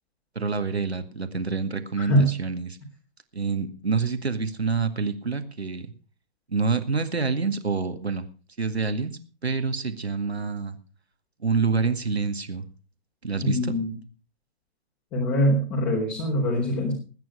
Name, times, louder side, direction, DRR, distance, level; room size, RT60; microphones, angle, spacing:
voice 1, 0.4-2.8 3.3-5.9 6.5-8.3 8.6-10.8 11.4-12.7 13.2-13.8, right 4 dB, 85° right, 8 dB, 2.1 m, -27 dB
voice 2, 13.4-13.9 15.1-16.9, equal, 25° left, 1 dB, 4.2 m, -23 dB
20.0 x 9.6 x 5.0 m, 0.38 s
figure-of-eight pair, 125°, 31 cm